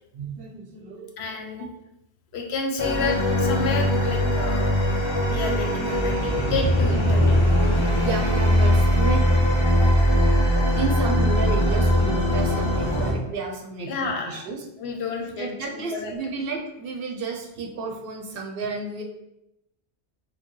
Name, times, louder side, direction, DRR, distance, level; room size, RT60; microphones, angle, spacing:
voice 1, 0.1-1.2 1.6-1.7 7.9-9.3 10.7-14.6 15.2-19.0, right 3 dB, 65° right, 2 dB, 0.7 m, -32 dB
voice 2, 1.2-1.7 2.3-7.3 7.8-7.9 13.9-14.4 14.8-15.5 15.7-16.1, left 4 dB, 80° left, 3 dB, 0.9 m, -30 dB
sound 1, 2.8-13.1, equal, 35° left, 0.6 m, -21 dB
4.5 x 2.0 x 3.0 m, 0.86 s
omnidirectional pair, 1.1 m